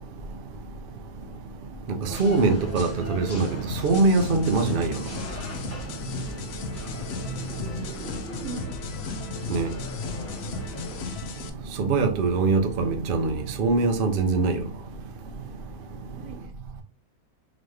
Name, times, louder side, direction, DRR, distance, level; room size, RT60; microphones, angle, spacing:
sound 1, 2.0-11.1, equal, 15° left, 0.7 m, -39 dB
voice 1, 2.2-3.5 3.8-5.0 9.5-9.7 11.8-14.6, right 3 dB, 55° right, 0.6 m, -22 dB
sound 2, 3.7-11.5, left 5 dB, 60° left, 0.7 m, -35 dB
voice 2, 7.6-9.1 9.3-9.7 16.1-16.5, right 5 dB, 80° right, 1.4 m, -43 dB
4.0 x 3.0 x 3.2 m
omnidirectional pair, 1.6 m